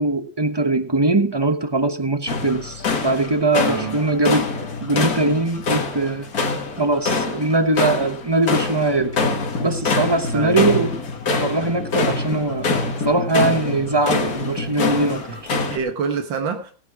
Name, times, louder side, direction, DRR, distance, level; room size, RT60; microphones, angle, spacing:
voice 1, 0.0-4.5 4.8-6.3 6.8-9.2 9.6-10.9 11.4-12.7 13.0-15.4, right 2 dB, 25° right, 0.6 m, -21 dB
sound 1, 2.3-15.8, left 3 dB, 50° left, 2.1 m, -25 dB
voice 2, 3.6-4.0 10.3-10.7 15.3-16.7, right 6 dB, 85° right, 2.0 m, -27 dB
17.0 x 9.1 x 4.8 m
omnidirectional pair, 2.0 m